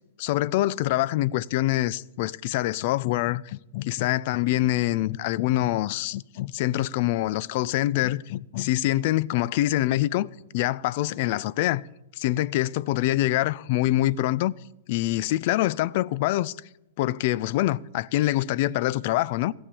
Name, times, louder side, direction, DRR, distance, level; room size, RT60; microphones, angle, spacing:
voice 1, 0.2-11.8 12.2-14.5 14.9-16.6 17.0-19.5, left 15 dB, 45° left, 0.4 m, -25 dB
15.0 x 7.2 x 8.4 m
hypercardioid pair, 150°, 0 cm